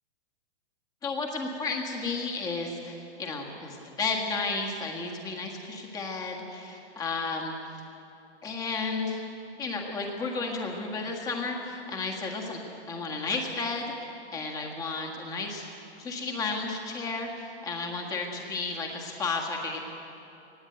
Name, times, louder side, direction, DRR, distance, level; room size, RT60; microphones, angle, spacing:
voice 1, 1.0-7.5 8.4-9.2 9.6-12.6 12.9-13.9 14.3-19.8, left 3 dB, 10° left, 1 dB, 1.7 m, -33 dB
19.5 x 15.5 x 9.0 m, 2.9 s
hypercardioid pair, 170°, 34 cm